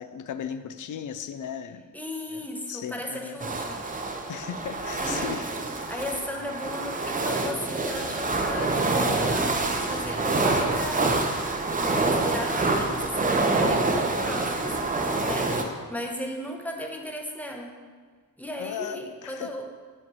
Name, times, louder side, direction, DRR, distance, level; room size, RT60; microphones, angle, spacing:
voice 1, 0.0-1.9 2.3-2.4 2.7-3.4 4.3-5.5 5.9-6.0 15.3-15.8 18.6-19.5, left 8 dB, 60° left, 11 dB, 0.5 m, -36 dB
voice 2, 1.9-3.8 5.0-5.4 5.9-11.3 11.8-14.8 15.2-15.5 15.9-17.7 18.4-19.7, left 1 dB, 5° left, 2 dB, 0.8 m, -36 dB
sound 1, 3.4-15.6, right 2 dB, 25° right, 0.7 m, -26 dB
6.1 x 5.4 x 5.5 m, 1.5 s
cardioid pair, 115°, 35 cm